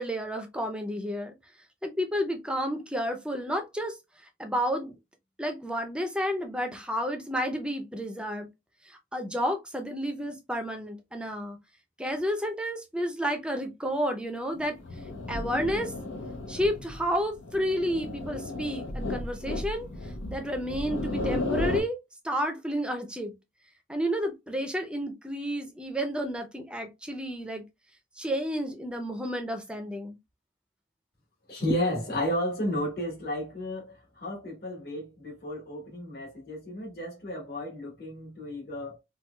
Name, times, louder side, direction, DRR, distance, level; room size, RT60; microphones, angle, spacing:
voice 1, 0.0-1.3 1.8-4.0 4.4-4.9 5.4-8.5 8.9-11.6 12.0-14.8 15.3-15.9 16.5-22.0 22.2-23.3 23.9-27.6 28.2-30.2, equal, 5° right, 0.5 m, -31 dB
sound 1, 14.5-21.8, left 2 dB, 90° left, 0.9 m, -34 dB
voice 2, 31.5-39.0, equal, 55° left, 1.6 m, -32 dB
4.5 x 2.3 x 2.2 m
head